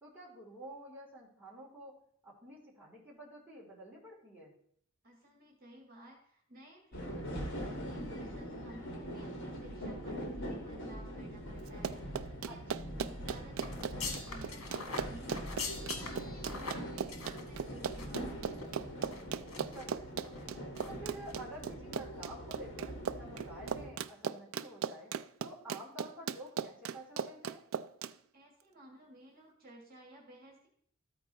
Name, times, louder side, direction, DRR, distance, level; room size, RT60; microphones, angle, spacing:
voice 1, 0.0-4.5 12.5-12.9 19.7-20.5 20.9-27.6, right 1 dB, 10° right, -5 dB, 2.5 m, -50 dB
voice 2, 5.0-12.8 13.1-18.6 28.3-30.7, right 1 dB, 45° right, 0 dB, 1.8 m, -56 dB
sound 1, 6.9-23.9, equal, 60° left, 1.6 m, -43 dB
Run, 11.7-28.1, right 7 dB, 70° right, 0.4 m, -38 dB
sound 2, 13.6-18.3 18.5-18.7 19.1-19.8 20.2-20.4 20.7-20.9 21.2-21.3, left 4 dB, 80° left, 1.5 m, -43 dB
13.5 x 4.5 x 4.0 m, 0.65 s
head